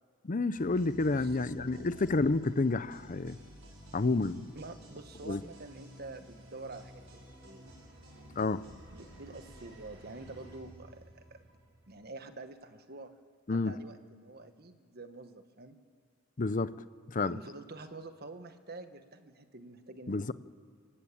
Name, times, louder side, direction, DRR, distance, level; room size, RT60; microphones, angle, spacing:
voice 1, 0.2-3.4 3.9-4.4 5.3-5.4 8.4-8.7 13.5-13.7 16.4-17.4 20.1-20.3, left 3 dB, 40° left, 15 dB, 0.6 m, -30 dB
sound 1, 0.5-12.3, equal, 75° right, 6.1 m, -53 dB
voice 2, 1.1-1.9 4.5-7.6 8.9-11.4 11.9-13.1 13.5-15.8 17.2-20.3, right 3 dB, 50° right, 8 dB, 1.5 m, -47 dB
28.5 x 17.5 x 8.6 m, 2.3 s
head